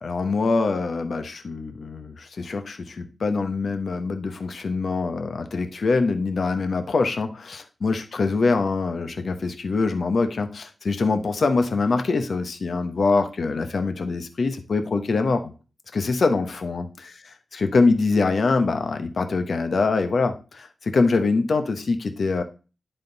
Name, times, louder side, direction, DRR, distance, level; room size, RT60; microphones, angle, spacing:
voice 1, 0.0-15.5 15.9-22.4, left 3 dB, 65° left, 8 dB, 0.9 m, -24 dB
10.5 x 3.7 x 4.0 m, 0.34 s
cardioid pair, 75°, 0 cm